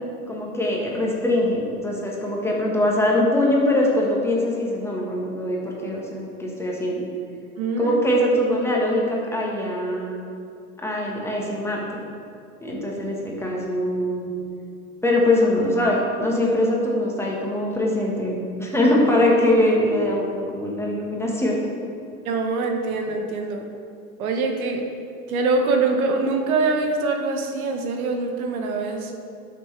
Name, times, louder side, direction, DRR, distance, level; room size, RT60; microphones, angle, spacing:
voice 1, 0.3-7.1 7.8-10.2 10.8-12.0 12.6-14.3 15.0-21.6, left 1 dB, 5° left, -3 dB, 1.6 m, -22 dB
voice 2, 7.6-8.0 12.7-12.8 22.2-23.6 24.2-24.8 25.3-29.1, right 3 dB, 70° right, 3 dB, 1.3 m, -24 dB
11.5 x 6.5 x 3.4 m, 2.4 s
hypercardioid pair, 105°, 44 cm